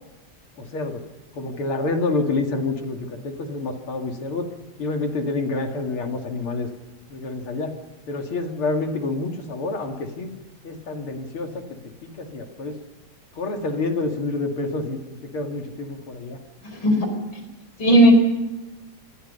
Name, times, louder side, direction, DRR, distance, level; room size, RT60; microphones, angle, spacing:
voice 1, 0.6-1.0 1.3-4.5 4.8-6.7 7.1-7.7 8.1-10.3 10.6-12.8 13.4-16.4, left 3 dB, 90° left, 4 dB, 3.3 m, -28 dB
voice 2, 16.6-17.1 17.8-18.1, right 1 dB, 65° left, 5 dB, 5.8 m, -16 dB
26.5 x 24.0 x 5.6 m, 1.1 s
omnidirectional pair, 2.3 m